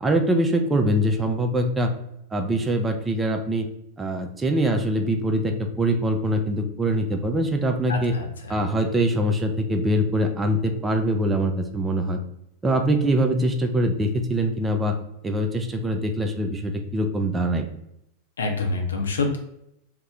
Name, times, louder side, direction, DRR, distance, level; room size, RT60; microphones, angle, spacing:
voice 1, 0.0-1.9 2.3-3.7 4.0-8.1 8.5-12.2 12.6-14.9 15.2-17.7, right 1 dB, 15° right, 4 dB, 0.4 m, -23 dB
voice 2, 7.9-8.6 18.4-19.4, left 3 dB, 70° left, 3 dB, 0.5 m, -27 dB
2.6 x 2.0 x 3.6 m, 0.79 s
figure-of-eight pair, 90°, 0 cm